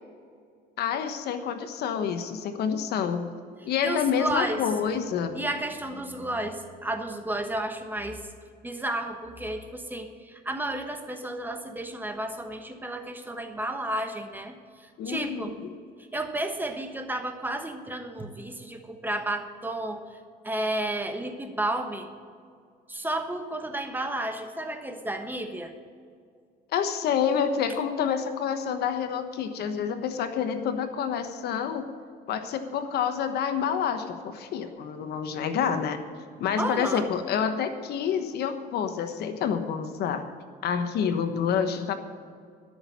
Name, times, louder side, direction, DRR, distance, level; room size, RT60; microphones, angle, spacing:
voice 1, 0.8-3.3 3.6-5.3 15.0-15.7 26.7-31.9 32.3-36.0 36.4-40.2 40.6-41.9, left 7 dB, 70° left, 8 dB, 1.2 m, -28 dB
voice 2, 3.8-4.6 5.3-8.2 8.6-15.6 16.1-20.0 20.4-22.1 22.9-25.7 36.6-37.1, right 1 dB, 10° right, 6 dB, 1.3 m, -32 dB
12.5 x 6.4 x 9.5 m, 2.2 s
cardioid pair, 110°, 17 cm